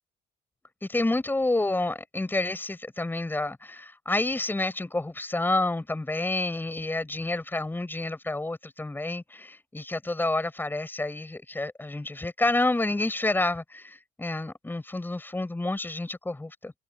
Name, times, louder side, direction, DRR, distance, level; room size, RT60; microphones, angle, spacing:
voice 1, 0.8-16.7, left 2 dB, 10° left, 7.2 m, -29 dB
cardioid pair, 110°, 17 cm